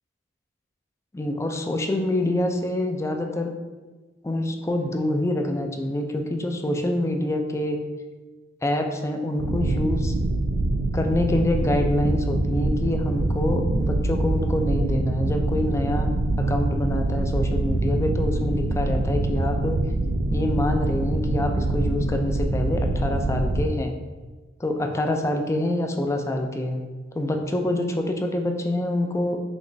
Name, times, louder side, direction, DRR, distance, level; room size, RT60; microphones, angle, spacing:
voice 1, 1.1-3.5 4.2-7.8 8.6-10.1 10.9-16.1 16.4-19.8 20.3-23.9 24.6-26.8 27.1-29.4, left 1 dB, 15° left, 4 dB, 0.3 m, -26 dB
sound 1, 9.4-23.7, right 2 dB, 80° right, 0.4 m, -25 dB
5.1 x 2.9 x 2.6 m, 1.3 s
head